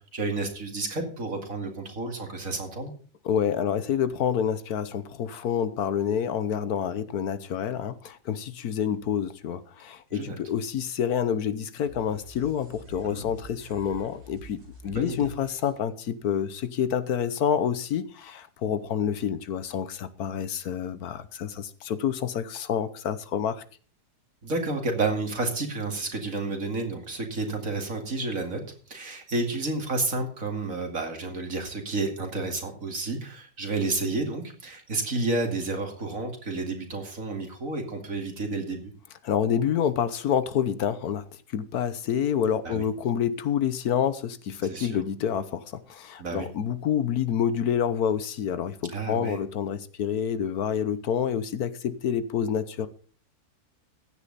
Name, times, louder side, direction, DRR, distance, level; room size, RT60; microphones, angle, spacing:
voice 1, 0.1-2.9 10.1-10.4 13.0-13.3 14.9-15.3 24.4-28.6 28.9-38.9 42.6-42.8 44.7-44.9 46.2-46.5 48.9-49.4, right 3 dB, 55° right, 2.7 m, -30 dB
voice 2, 3.2-23.6 39.2-52.9, left 8 dB, 70° left, 1.3 m, -28 dB
sound 1, 11.8-15.7, equal, 80° right, 6.5 m, -47 dB
15.0 x 9.9 x 4.0 m
omnidirectional pair, 1.7 m